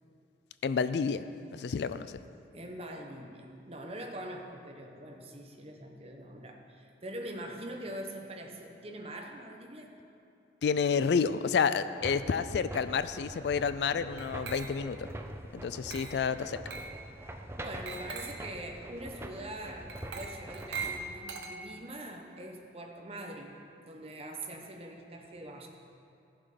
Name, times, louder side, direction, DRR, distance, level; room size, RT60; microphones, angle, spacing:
voice 1, 0.6-1.3 1.5-2.1 10.6-15.1 15.5-16.6, left 6 dB, 65° left, 13 dB, 0.3 m, -29 dB
voice 2, 2.5-9.9 17.6-25.7, right 1 dB, 30° right, 2 dB, 1.1 m, -43 dB
sound 1, 12.0-21.1, right 1 dB, 15° right, 0.5 m, -44 dB
Glass, 14.2-15.0 15.9-16.3 16.7-17.0 17.9-18.5 19.9-21.9, right 4 dB, 75° right, 1.0 m, -41 dB
15.0 x 7.3 x 5.1 m, 2.7 s
head